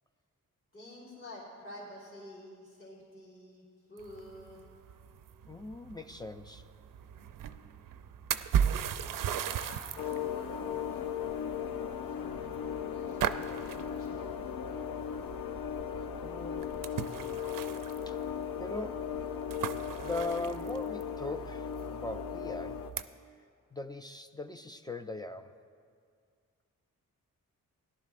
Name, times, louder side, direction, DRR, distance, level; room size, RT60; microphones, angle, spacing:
voice 1, 0.7-3.6 3.9-4.6 9.3-14.4, left 1 dB, 40° left, -7 dB, 3.1 m, -50 dB
sound 1, 4.0-23.0, right 8 dB, 75° right, 0.5 m, -38 dB
voice 2, 5.5-6.6 16.2-16.8 18.1-19.1 20.0-22.8 23.7-25.5, left 2 dB, 10° left, 6 dB, 0.4 m, -40 dB
sound 2, 10.0-22.9, left 9 dB, 80° left, 0.5 m, -37 dB
17.5 x 11.5 x 2.5 m, 2.2 s
cardioid pair, 75°, 34 cm